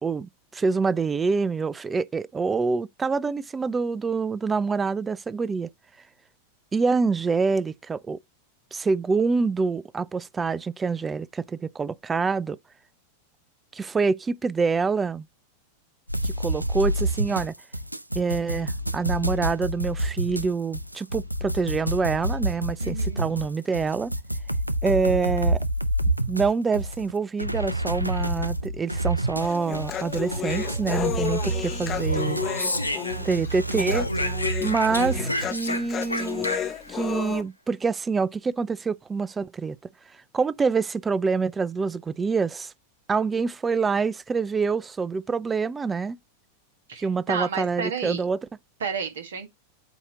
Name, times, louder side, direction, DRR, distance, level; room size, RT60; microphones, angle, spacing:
voice 1, 0.0-5.7 6.7-8.2 8.7-12.6 13.7-15.3 16.2-17.5 18.1-24.1 24.8-25.6 26.3-32.4 33.2-34.1 34.6-36.5 36.9-39.8 40.3-42.7 43.1-46.2 47.0-48.4, right 4 dB, 15° right, 0.3 m, -26 dB
sound 1, 16.1-35.5, right 1 dB, 90° right, 0.4 m, -28 dB
voice 2, 22.8-23.3 46.9-48.2 48.8-49.5, right 6 dB, 65° right, 1.7 m, -31 dB
Human voice, 29.4-37.4, left 9 dB, 25° left, 0.9 m, -32 dB
Speech, 31.8-33.5 33.8-36.9, left 1 dB, 85° left, 0.8 m, -30 dB
8.2 x 2.8 x 4.7 m
figure-of-eight pair, 90°, 0 cm